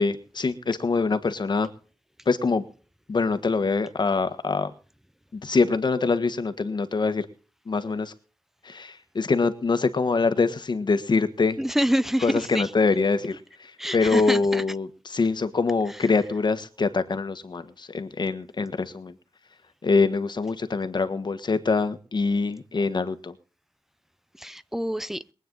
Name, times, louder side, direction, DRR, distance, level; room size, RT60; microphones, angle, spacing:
voice 1, 0.0-1.7 2.2-2.6 3.1-4.7 5.3-7.2 7.7-8.1 8.6-11.6 12.2-19.1 19.8-23.3, left 4 dB, 55° left, 1.5 m, -24 dB
voice 2, 11.6-12.7 13.8-14.6 24.4-25.2, equal, 5° right, 0.7 m, -26 dB
22.5 x 9.2 x 3.9 m
wide cardioid pair, 130°, 9 cm